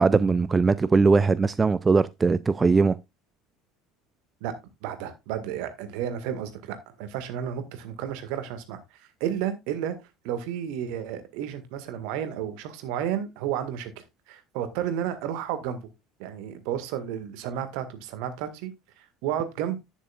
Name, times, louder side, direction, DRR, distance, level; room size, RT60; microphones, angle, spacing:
voice 1, 0.0-3.0, right 4 dB, 20° right, 0.4 m, -20 dB
voice 2, 4.8-10.0 10.2-13.9 14.3-15.8 16.2-18.7 19.0-19.8, right 10 dB, 60° right, 1.8 m, -32 dB
11.0 x 10.0 x 2.4 m
figure-of-eight pair, 65°, 0 cm